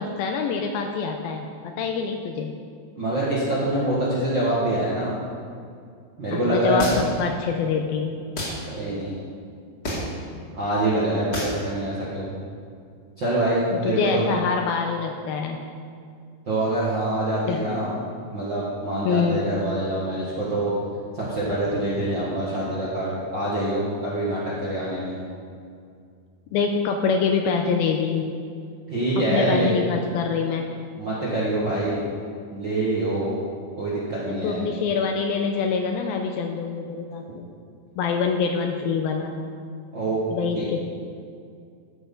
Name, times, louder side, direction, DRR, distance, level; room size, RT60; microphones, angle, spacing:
voice 1, 0.0-2.5 6.3-8.3 10.3-10.5 13.7-15.6 17.5-17.6 19.1-19.4 26.5-28.3 29.3-30.7 34.2-37.5 38.0-39.4 40.3-40.8, left 5 dB, 85° left, 3 dB, 2.2 m, -25 dB
voice 2, 2.9-5.1 6.2-6.9 8.7-9.2 10.5-12.3 13.2-14.2 16.5-17.9 18.3-20.7 21.1-25.2 28.9-29.7 31.0-32.0 32.5-33.3 33.8-34.6 39.9-40.2 40.5-40.7, right 1 dB, 50° right, -8 dB, 1.3 m, -25 dB
sound 1, 6.8-7.2 8.4-8.6 9.8-10.2 11.3-11.6, equal, 35° left, 2.0 m, -28 dB
14.0 x 6.3 x 5.4 m, 2.3 s
omnidirectional pair, 4.7 m